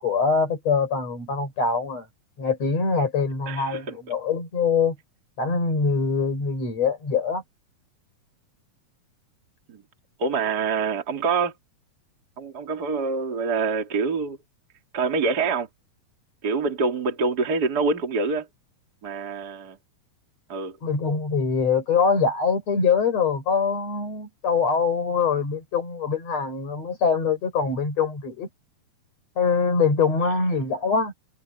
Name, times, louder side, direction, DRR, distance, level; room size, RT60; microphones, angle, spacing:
voice 1, 0.0-2.1 2.4-5.0 5.4-7.4 20.8-28.5 29.4-31.1, left 5 dB, 45° left, 7.1 m, -23 dB
voice 2, 3.5-4.0 9.7-9.8 10.2-11.5 12.4-14.4 14.9-15.7 16.4-18.5 19.0-19.8 20.5-20.8, right 4 dB, 30° right, 2.8 m, -25 dB
omnidirectional pair, 4.1 m